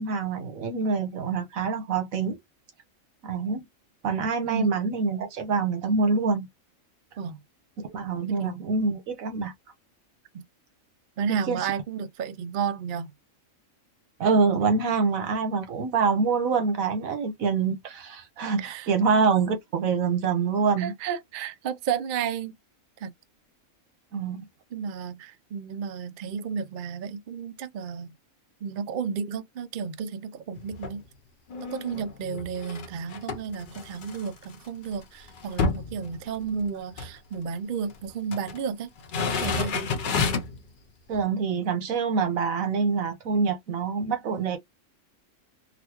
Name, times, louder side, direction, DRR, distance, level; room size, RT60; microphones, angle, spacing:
voice 1, 0.0-2.4 3.2-3.6 4.0-6.5 7.8-9.5 11.3-11.7 14.2-20.9 24.1-24.4 41.1-44.6, right 5 dB, 85° right, 1.4 m, -25 dB
voice 2, 4.5-4.8 7.2-7.4 8.3-8.6 10.3-10.4 11.2-13.1 18.6-18.9 20.8-22.5 23.0-23.1 24.7-28.1 28.6-31.0 31.7-38.9 39.3-39.9, right 6 dB, 65° right, 0.5 m, -32 dB
sound 1, 30.6-31.0 31.5-34.5 34.9-35.0 35.3-36.7 36.9-37.1 37.9-38.6 39.0-40.6 41.1-41.2, left 4 dB, 50° left, 0.6 m, -30 dB
3.9 x 2.1 x 2.9 m
omnidirectional pair, 1.4 m